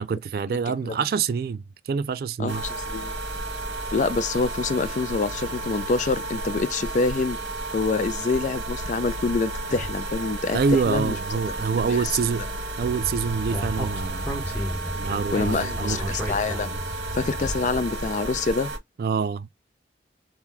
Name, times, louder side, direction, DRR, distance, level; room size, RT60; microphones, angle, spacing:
voice 1, 0.0-2.6 10.5-12.5 12.8-14.3 15.0-16.2 19.0-19.5, right 5 dB, 55° right, 0.3 m, -26 dB
voice 2, 0.7-1.0 2.4-3.1 3.9-7.4 7.7-11.2 11.6-12.0 14.7-15.0 15.3-16.8 17.1-18.7, left 4 dB, 45° left, 0.3 m, -26 dB
sound 1, 2.5-18.8, right 2 dB, 85° right, 1.1 m, -32 dB
Speech, 12.8-17.7, equal, 10° left, 1.0 m, -33 dB
2.9 x 2.3 x 3.6 m
head